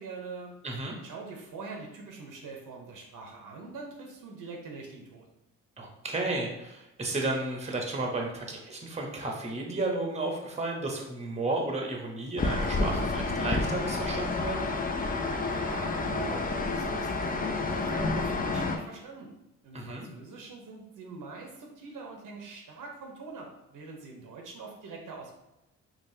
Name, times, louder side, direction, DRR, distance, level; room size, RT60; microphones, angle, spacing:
voice 1, 0.0-0.5 1.0-5.3 15.5-19.3 19.6-25.3, right 3 dB, 60° right, 1 dB, 0.8 m, -43 dB
voice 2, 0.6-0.9 5.8-14.7 19.7-20.1, right 2 dB, 20° right, 1 dB, 0.9 m, -33 dB
sound 1, 12.4-18.8, left 3 dB, 25° left, 0.4 m, -29 dB
3.8 x 2.4 x 2.7 m, 0.92 s
supercardioid pair, 60°, 36 cm